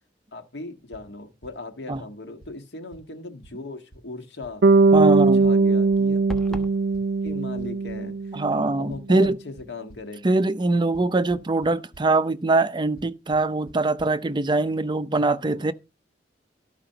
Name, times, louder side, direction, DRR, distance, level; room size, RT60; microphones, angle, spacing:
voice 1, 0.3-6.7 7.2-8.4 8.8-10.4 10.7-10.8 15.4-15.7, left 2 dB, 75° left, 1.7 m, -38 dB
sound 1, 0.9-1.0 1.4-1.5 1.9-2.0 2.4-2.5 2.9-3.0 3.4-3.5 3.9-4.0 4.4-4.5 4.9-5.0 5.4-5.5 5.9-6.0 6.4-6.5 6.9-7.9 8.9-10.0 10.9-11.0 11.3-11.7 11.9-12.0 13.0-13.1 13.3-13.4 13.7-13.8 14.0-14.1, right 1 dB, 55° left, 2.4 m, -47 dB
Bass guitar, 4.6-8.7, right 3 dB, 75° right, 0.5 m, -20 dB
voice 2, 4.9-5.4 8.3-9.4 10.2-15.7, right 2 dB, 25° right, 0.6 m, -22 dB
sound 2, 6.3-6.8, equal, 5° left, 1.1 m, -34 dB
13.0 x 4.9 x 5.7 m
head